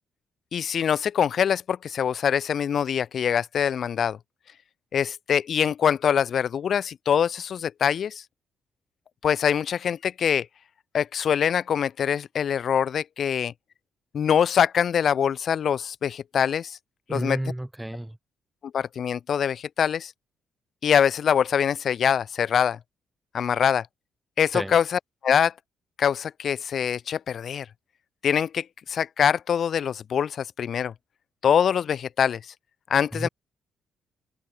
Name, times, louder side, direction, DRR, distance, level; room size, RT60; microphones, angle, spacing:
voice 1, 0.5-4.2 4.9-8.2 9.2-10.5 10.9-13.5 14.1-16.8 17.1-17.4 18.7-20.1 20.8-22.8 23.3-23.9 24.4-25.5 26.0-27.7 28.2-30.9 31.4-32.4 32.9-33.3, left 8 dB, 45° left, 0.6 m, -24 dB
voice 2, 17.1-18.2 24.5-24.7 33.1-33.3, right 1 dB, 5° right, 0.5 m, -31 dB
open air
cardioid pair, 150°, 0 cm